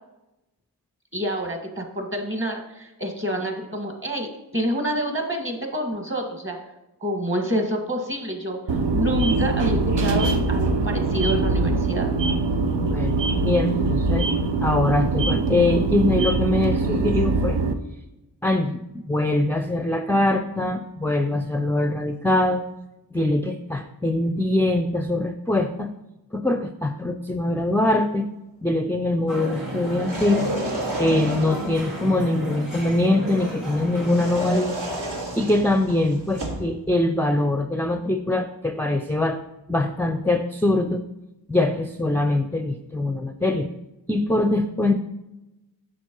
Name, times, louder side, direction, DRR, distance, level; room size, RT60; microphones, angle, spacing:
voice 1, 1.1-6.6 7.0-12.1, equal, 30° right, 2 dB, 1.8 m, -28 dB
sound 1, 8.7-17.7, right 3 dB, 90° right, 0.6 m, -23 dB
voice 2, 12.8-14.3 14.6-17.6 18.4-22.6 23.1-25.9 26.3-28.3 28.6-30.4 31.0-34.8 35.4-39.4 39.7-41.0 41.5-43.7 44.1-44.9, left 2 dB, 5° left, 7 dB, 0.4 m, -23 dB
sound 2, 29.3-34.5, equal, 50° right, 2.5 m, -33 dB
sound 3, 29.9-31.8 34.0-36.7, right 1 dB, 70° right, 1.9 m, -31 dB
9.1 x 6.4 x 3.0 m, 0.95 s
wide cardioid pair, 50°, 41 cm